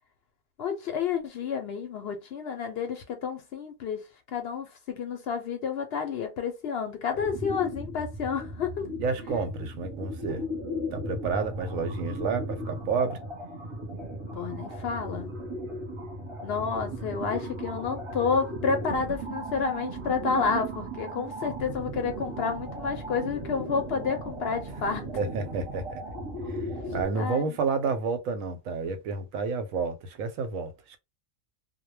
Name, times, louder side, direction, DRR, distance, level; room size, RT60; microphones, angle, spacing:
voice 1, 0.6-8.9 14.3-15.3 16.4-25.1 27.1-27.4, left 5 dB, 65° left, 0.7 m, -30 dB
sound 1, 7.1-27.1, right 1 dB, 30° right, 0.7 m, -36 dB
voice 2, 9.0-10.4 10.9-13.2 25.1-26.0 26.5-26.6 26.9-31.0, right 4 dB, 90° right, 1.0 m, -30 dB
2.2 x 2.1 x 3.1 m
omnidirectional pair, 1.4 m